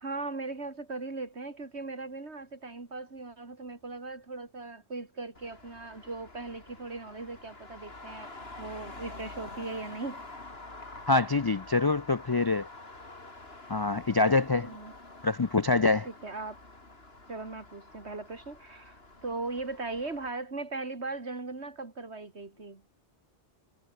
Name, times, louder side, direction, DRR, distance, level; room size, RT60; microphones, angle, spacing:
voice 1, 0.0-8.3 8.6-10.2 14.5-14.9 16.0-16.6 17.3-22.9, right 3 dB, 70° right, 3.3 m, -39 dB
Traffic noise roadway noise, 5.3-20.3, left 2 dB, 60° left, 4.0 m, -48 dB
voice 2, 11.1-12.7 13.7-14.7 15.2-16.1, left 3 dB, 35° left, 0.3 m, -25 dB
omnidirectional pair, 1.2 m